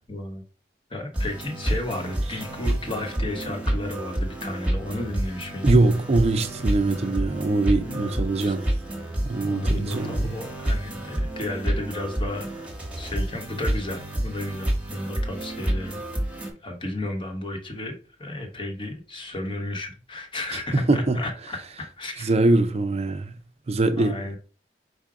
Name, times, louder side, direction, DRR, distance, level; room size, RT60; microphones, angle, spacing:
voice 1, 0.1-0.4 0.9-5.8 7.8-8.5 9.4-12.5 13.0-16.0 16.6-22.3 23.9-24.4, left 1 dB, 30° left, 1.0 m, -33 dB
sound 1, 1.1-16.5, right 1 dB, 5° right, 1.1 m, -29 dB
voice 2, 5.6-8.7 9.2-10.4 20.7-21.2 22.2-23.4 23.7-24.2, right 2 dB, 35° right, 0.5 m, -22 dB
4.8 x 2.3 x 4.8 m
head